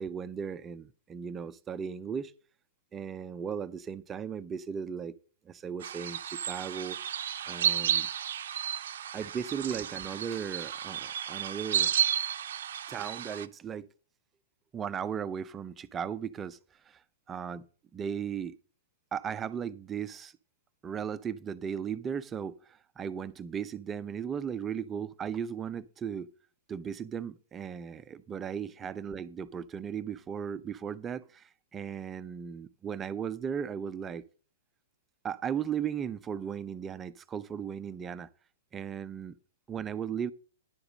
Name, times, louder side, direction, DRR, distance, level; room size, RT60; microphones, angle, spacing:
voice 1, 0.0-2.3 2.9-5.1 5.5-7.0 7.5-8.1 9.1-11.9 12.9-13.9 14.7-16.6 16.9-17.0 17.3-17.6 17.9-18.5 19.1-20.3 20.8-26.3 26.7-34.2 35.2-38.3 38.7-39.4 39.7-40.3, right 7 dB, 20° right, 0.5 m, -36 dB
sound 1, 5.8-13.5, right 9 dB, 60° right, 0.6 m, -32 dB
10.5 x 4.9 x 6.3 m
figure-of-eight pair, 115°, 0 cm